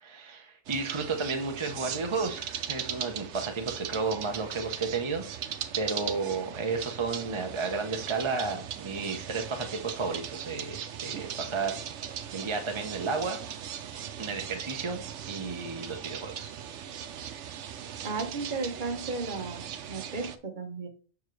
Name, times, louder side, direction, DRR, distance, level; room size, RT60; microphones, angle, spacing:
voice 1, 0.0-5.2 5.8-13.4 14.2-16.5, right 4 dB, 30° right, 4 dB, 0.7 m, -33 dB
sound 1, 0.7-20.4, right 9 dB, 85° right, 1.0 m, -39 dB
voice 2, 18.0-20.9, right 3 dB, 45° right, 5 dB, 1.1 m, -34 dB
7.1 x 5.9 x 3.2 m, 0.41 s
omnidirectional pair, 1.2 m